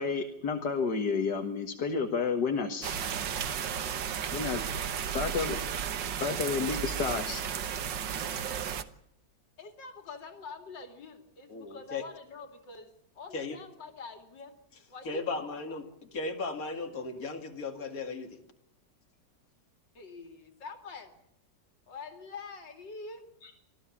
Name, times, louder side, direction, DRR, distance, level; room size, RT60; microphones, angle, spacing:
voice 1, 0.0-3.0 4.3-4.6 5.1-5.6 6.2-7.6 23.4-23.5, left 5 dB, 70° left, 4 dB, 2.2 m, -31 dB
sound 1, 2.8-8.8, right 8 dB, 80° right, 1.8 m, -34 dB
voice 2, 9.6-14.5 14.9-15.8 19.9-21.1 21.9-23.3, left 4 dB, 85° left, 6 dB, 3.1 m, -45 dB
voice 3, 11.5-12.0 13.3-13.6 15.0-18.4, left 3 dB, 50° left, 4 dB, 2.8 m, -36 dB
26.0 x 16.0 x 7.3 m, 0.78 s
omnidirectional pair, 1.9 m